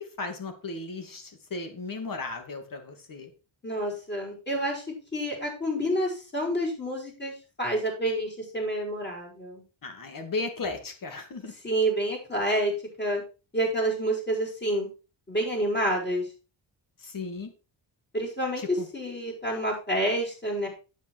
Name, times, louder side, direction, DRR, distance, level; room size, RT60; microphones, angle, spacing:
voice 1, 0.0-3.3 9.8-11.5 17.0-17.5 18.6-18.9, left 3 dB, 50° left, 6 dB, 2.7 m, -35 dB
voice 2, 3.6-7.3 7.6-9.6 11.6-12.7 13.0-13.2 13.5-14.9 15.3-16.3 18.1-20.7, right 1 dB, 25° left, -2 dB, 5.5 m, -28 dB
9.0 x 8.3 x 4.6 m, 0.33 s
cardioid pair, 115°, 44 cm